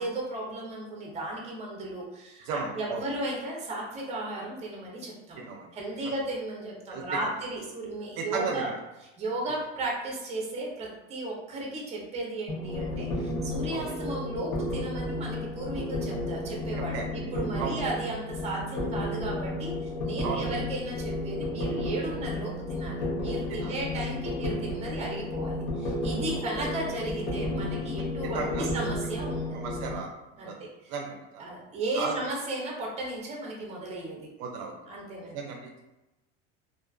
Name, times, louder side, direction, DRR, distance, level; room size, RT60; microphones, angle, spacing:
voice 1, 0.0-5.4 5.7-8.7 9.2-17.0 17.3-29.8 30.4-30.9 31.4-34.3 34.9-35.4, right 2 dB, 20° right, -2 dB, 0.6 m, -35 dB
voice 2, 2.4-3.0 5.4-5.7 6.9-7.3 8.2-8.7 13.7-13.9 16.9-17.1 17.6-17.8 20.2-20.5 23.5-23.7 26.3-26.5 28.3-28.7 29.5-30.1 30.4-30.6 30.9-31.4 32.0-32.1 34.4-34.7 35.2-35.8, right 5 dB, 65° right, 1 dB, 0.5 m, -35 dB
sound 1, 12.5-29.9, left 1 dB, 55° left, 0.8 m, -32 dB
2.4 x 2.3 x 2.3 m, 0.98 s
supercardioid pair, 135°, 32 cm